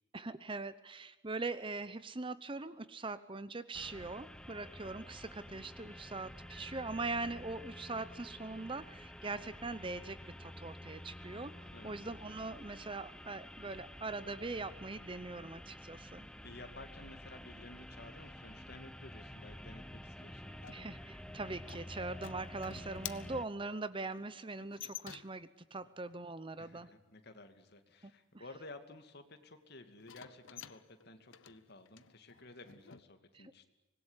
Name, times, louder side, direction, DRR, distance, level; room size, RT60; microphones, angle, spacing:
voice 1, 0.1-11.5 11.8-16.3 20.7-26.9 28.0-28.4 33.3-33.5, right 3 dB, 25° right, 14 dB, 0.9 m, -42 dB
sound 1, 3.7-23.4, left 1 dB, 5° left, 1.1 m, -50 dB
voice 2, 16.4-20.7 26.6-33.6, left 2 dB, 55° left, 7 dB, 2.6 m, -54 dB
sound 2, 20.6-25.6 30.0-33.0, left 10 dB, 85° left, 0.9 m, -50 dB
25.5 x 20.5 x 9.9 m, 1.0 s
head